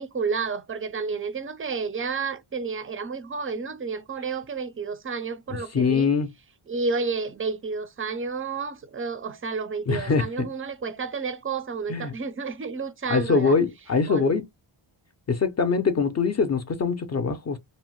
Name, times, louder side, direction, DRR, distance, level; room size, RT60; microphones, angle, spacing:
voice 1, 0.0-6.1 6.7-13.6 14.1-14.3, right 4 dB, 30° right, 0.4 m, -31 dB
voice 2, 5.7-6.3 9.9-10.5 11.9-12.1 13.1-14.4 15.3-17.6, left 5 dB, 35° left, 0.5 m, -23 dB
2.6 x 2.1 x 2.9 m
wide cardioid pair, 110°, 49 cm